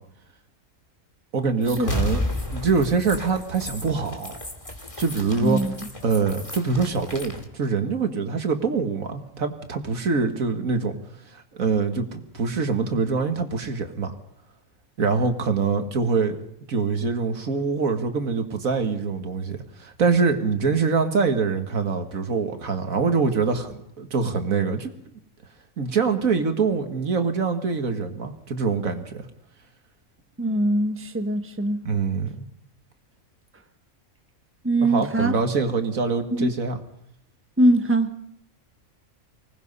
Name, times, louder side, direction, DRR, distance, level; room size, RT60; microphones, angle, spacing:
voice 1, 1.3-2.2 2.5-4.4 5.0-5.6 6.0-11.0 11.3-14.1 15.0-16.4 16.7-24.9 25.8-29.3 31.9-32.4 34.8-36.8, right 5 dB, 75° right, 6 dB, 2.2 m, -24 dB
sound 1, 1.6-7.4, left 1 dB, 25° left, 2.4 m, -32 dB
voice 2, 5.4-5.7 30.4-31.8 34.6-35.3 36.3-36.5 37.6-38.1, right 1 dB, 10° right, 7 dB, 1.2 m, -22 dB
25.0 x 19.0 x 5.5 m, 0.76 s
omnidirectional pair, 1.4 m